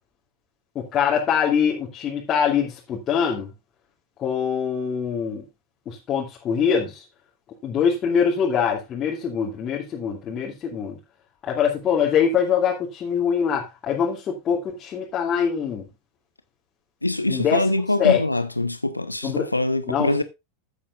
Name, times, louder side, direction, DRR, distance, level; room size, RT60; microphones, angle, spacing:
voice 1, 0.7-3.5 4.2-5.4 5.9-7.0 7.6-11.0 11.4-15.8 17.3-17.6 18.0-18.2 19.2-19.5 19.9-20.1, left 7 dB, 30° left, 2.8 m, -23 dB
voice 2, 17.0-20.2, left 2 dB, 85° left, 1.1 m, -24 dB
14.5 x 8.5 x 2.5 m
figure-of-eight pair, 85°, 0 cm